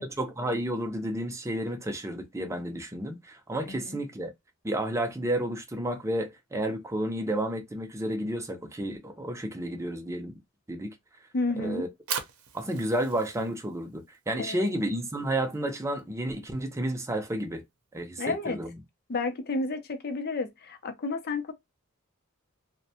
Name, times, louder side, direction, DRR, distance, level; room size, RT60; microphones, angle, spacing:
voice 1, 0.2-4.3 4.6-10.4 10.7-10.9 11.6-11.9 12.5-17.6 17.9-18.7, right 1 dB, 15° right, 0.5 m, -31 dB
voice 2, 3.6-4.0 11.3-11.8 14.4-14.7 18.2-18.6 19.1-21.5, left 3 dB, 45° left, 0.6 m, -31 dB
Fire, 11.8-18.0, right 7 dB, 90° right, 0.6 m, -42 dB
2.5 x 2.1 x 2.7 m
head